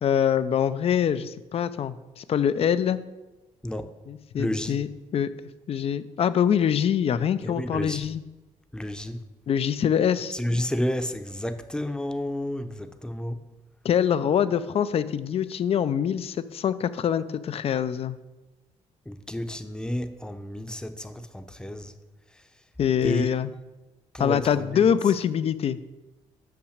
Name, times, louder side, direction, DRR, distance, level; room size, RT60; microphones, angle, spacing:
voice 1, 0.0-3.0 4.1-5.3 5.7-8.2 9.5-10.3 13.8-18.2 22.8-23.5 24.2-25.8, left 8 dB, 50° left, 14 dB, 0.5 m, -24 dB
voice 2, 4.4-4.8 7.4-8.1 8.7-9.2 10.3-13.4 19.1-21.9 23.0-23.3 24.1-24.8, left 1 dB, 5° left, 8 dB, 0.7 m, -31 dB
6.3 x 5.8 x 6.5 m, 1.1 s
cardioid pair, 90°, 13 cm